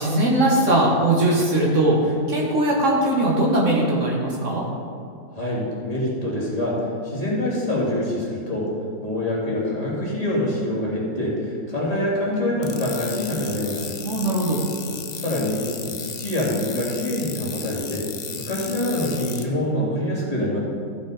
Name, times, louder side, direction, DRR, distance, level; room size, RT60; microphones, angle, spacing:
voice 1, 0.0-4.6 14.0-14.6, right 1 dB, 60° right, -3 dB, 2.0 m, -20 dB
voice 2, 5.3-8.7 9.0-14.0 15.1-18.0 18.3-20.6, left 1 dB, 25° left, -6 dB, 2.6 m, -25 dB
sound 1, 12.6-19.4, left 6 dB, 45° left, 0.5 m, -35 dB
14.5 x 6.4 x 5.0 m, 2.4 s
omnidirectional pair, 1.5 m